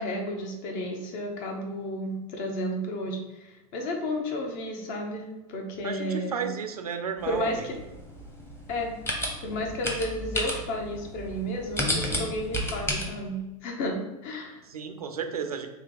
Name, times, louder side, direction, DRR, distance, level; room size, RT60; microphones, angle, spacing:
voice 1, 0.0-6.5 7.2-7.8 8.7-8.9 9.4-14.6, left 1 dB, 45° left, 2 dB, 1.0 m, -32 dB
voice 2, 5.8-7.6 14.7-15.7, right 6 dB, 90° right, 6 dB, 0.6 m, -33 dB
sound 1, 7.2-13.0, left 1 dB, 15° left, 0.9 m, -32 dB
3.2 x 2.8 x 3.9 m, 1.0 s
hypercardioid pair, 100°, 19 cm